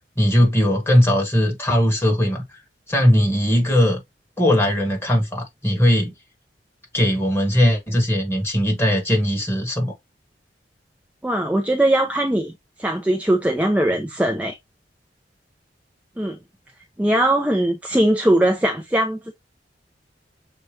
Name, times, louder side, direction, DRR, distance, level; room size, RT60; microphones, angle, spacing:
voice 1, 0.2-2.4 2.9-4.0 4.4-6.1 6.9-9.9, equal, 15° left, 1.7 m, -19 dB
voice 2, 11.2-12.5 12.8-14.6 16.2-16.4 17.0-19.3, right 1 dB, 10° right, 0.5 m, -20 dB
6.7 x 2.5 x 3.1 m
head